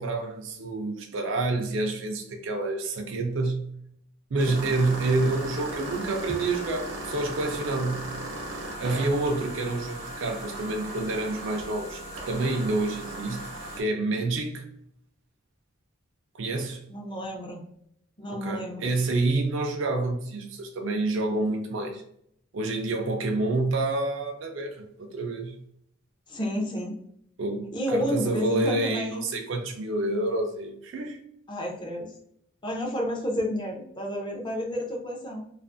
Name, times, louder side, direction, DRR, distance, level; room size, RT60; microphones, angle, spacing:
voice 1, 0.0-3.7 4.3-8.1 8.8-13.5 13.8-14.7 16.4-16.8 18.3-22.0 22.5-25.5 27.4-31.2, right 2 dB, 60° right, 2 dB, 0.4 m, -28 dB
sound 1, 4.4-13.8, right 1 dB, 85° right, 0.8 m, -37 dB
voice 2, 16.9-17.6 18.2-18.9 26.3-26.9 27.7-29.2 31.5-32.1 32.6-35.4, equal, 20° left, 0 dB, 0.5 m, -30 dB
2.5 x 2.4 x 2.5 m, 0.70 s
head